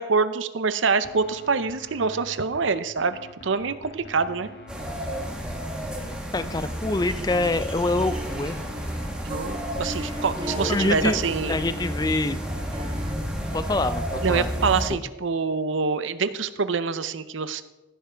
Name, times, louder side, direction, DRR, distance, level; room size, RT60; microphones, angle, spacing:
voice 1, 0.0-4.5 9.2-11.5 14.2-17.6, right 4 dB, 80° right, 13 dB, 0.6 m, -25 dB
sound 1, 1.0-14.8, equal, 55° left, 1.6 m, -45 dB
sound 2, 4.7-14.9, equal, 5° right, 1.4 m, -31 dB
voice 2, 6.3-8.6 10.7-11.2 11.5-12.4 13.5-14.5, left 2 dB, 20° left, 12 dB, 0.4 m, -25 dB
sound 3, 7.3-13.3, equal, 25° right, 1.2 m, -37 dB
15.5 x 5.6 x 5.0 m, 1.1 s
head